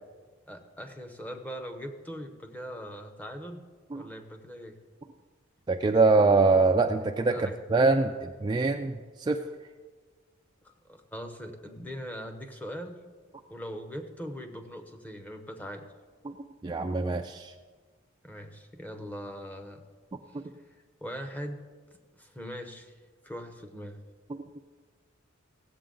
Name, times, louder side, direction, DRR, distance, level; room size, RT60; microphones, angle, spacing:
voice 1, 0.5-3.6 3.9-4.8 7.3-7.6 10.8-13.0 13.5-15.9 18.2-19.8 20.3-20.4 21.0-21.6 22.1-23.0 23.2-24.0, equal, 10° left, 5 dB, 0.8 m, -41 dB
voice 2, 5.7-9.4 16.2-16.3 16.6-17.5 20.3-20.4, right 3 dB, 20° right, 4 dB, 0.3 m, -24 dB
16.5 x 7.8 x 3.8 m, 1.5 s
head